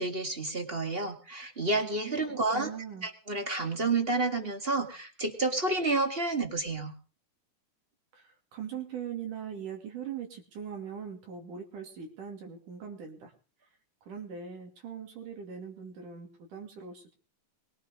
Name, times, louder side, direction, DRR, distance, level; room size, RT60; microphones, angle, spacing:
voice 1, 0.0-2.7 3.0-6.9, right 3 dB, 20° right, 6 dB, 1.7 m, -30 dB
voice 2, 2.1-3.1 8.1-13.3 14.0-17.1, right 7 dB, 70° right, 2 dB, 4.2 m, -41 dB
21.5 x 11.5 x 5.0 m, 0.38 s
omnidirectional pair, 3.8 m